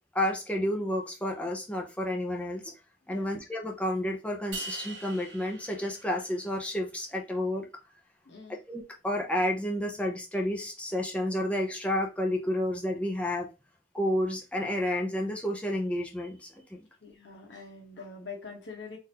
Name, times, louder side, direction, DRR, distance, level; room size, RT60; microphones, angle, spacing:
voice 1, 0.1-2.7 3.1-7.7 8.7-13.5 13.9-16.5, left 1 dB, 5° left, 1 dB, 0.6 m, -30 dB
sound 1, 4.5-6.8, right 2 dB, 85° right, 0.8 m, -42 dB
voice 2, 8.2-8.6 17.0-19.0, left 4 dB, 85° left, 1 dB, 1.0 m, -44 dB
3.8 x 2.6 x 2.8 m, 0.28 s
head